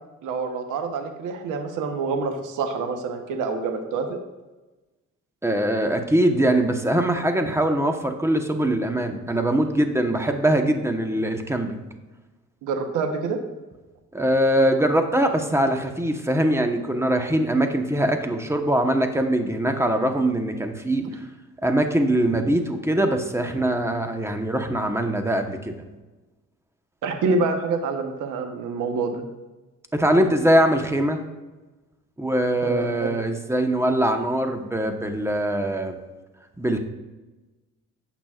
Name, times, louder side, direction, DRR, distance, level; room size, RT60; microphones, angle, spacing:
voice 1, 0.2-4.2 12.6-13.4 27.0-29.2 32.6-33.1, right 4 dB, 90° right, 5 dB, 1.1 m, -26 dB
voice 2, 5.4-11.8 14.1-21.1 21.6-25.7 29.9-31.2 32.2-36.0 36.6-36.8, right 1 dB, 10° right, 5 dB, 1.0 m, -22 dB
15.5 x 6.0 x 2.4 m, 1.1 s
cardioid pair, 90°, 30 cm